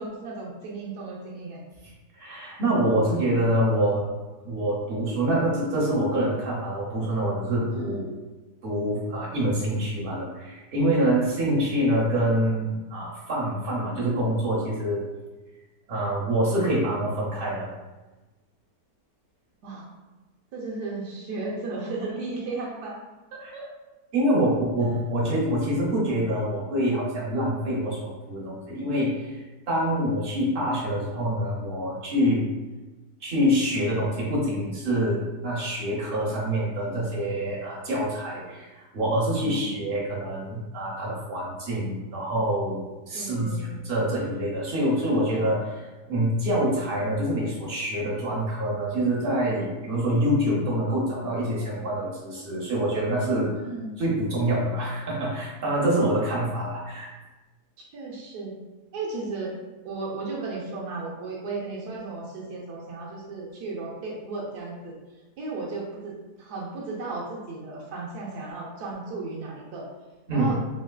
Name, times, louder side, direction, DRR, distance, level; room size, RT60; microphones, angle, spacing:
voice 1, 0.0-1.6 7.7-8.1 19.6-19.9 20.5-23.0 23.3-23.7 39.4-39.8 43.1-43.8 53.5-54.0 57.8-58.6 58.9-59.5 59.8-64.9 65.4-69.9 70.3-70.6, right 3 dB, 75° right, -3 dB, 1.2 m, -35 dB
voice 2, 2.1-4.0 4.4-8.0 8.6-15.0 15.9-17.7 23.4-23.5 24.1-32.4 33.2-42.8 43.1-53.5 54.0-57.1 70.3-70.5, right 1 dB, 50° right, -5 dB, 0.7 m, -26 dB
3.2 x 2.7 x 2.2 m, 1.1 s
omnidirectional pair, 1.8 m